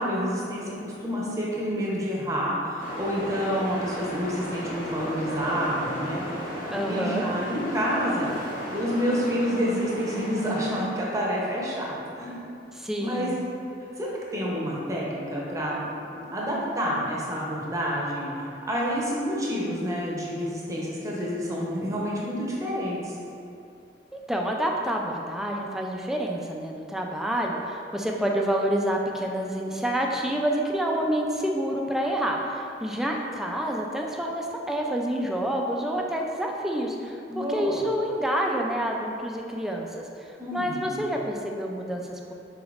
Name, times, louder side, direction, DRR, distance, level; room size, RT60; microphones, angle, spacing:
voice 1, 0.0-8.3 8.7-12.4 13.0-13.3 14.0-15.8 16.1-23.2 37.3-37.8 40.4-41.0, equal, 20° right, -5 dB, 0.7 m, -29 dB
sound 1, 2.8-10.8, equal, 50° left, 0.8 m, -35 dB
voice 2, 6.7-7.2 12.7-13.4 24.1-42.3, right 1 dB, ahead, 0 dB, 0.3 m, -28 dB
5.1 x 3.9 x 2.4 m, 2.6 s
head